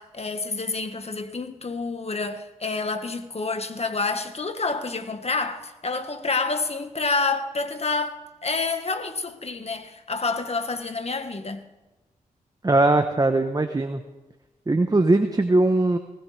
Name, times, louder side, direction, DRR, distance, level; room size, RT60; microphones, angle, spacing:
voice 1, 0.0-11.6, left 3 dB, 45° left, 1.6 m, -28 dB
voice 2, 12.6-14.0 14.7-16.0, right 2 dB, 25° right, 1.1 m, -20 dB
19.5 x 16.5 x 3.5 m
cardioid pair, 45°, 15 cm